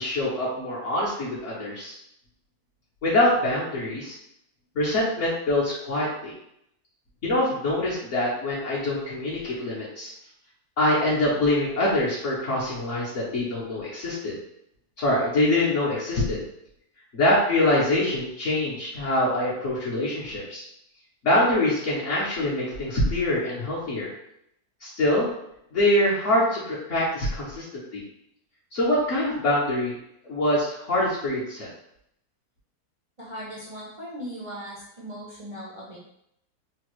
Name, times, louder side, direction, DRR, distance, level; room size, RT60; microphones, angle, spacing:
voice 1, 0.0-2.0 3.0-4.1 4.7-6.3 7.2-10.1 10.8-14.4 15.0-16.4 17.1-20.6 21.2-24.1 24.8-25.3 25.7-28.0 28.7-30.0 30.3-31.7, left 1 dB, 55° left, -8 dB, 1.0 m, -24 dB
voice 2, 33.2-36.0, equal, 55° right, -7 dB, 0.3 m, -38 dB
3.2 x 2.2 x 3.0 m, 0.75 s
omnidirectional pair, 1.7 m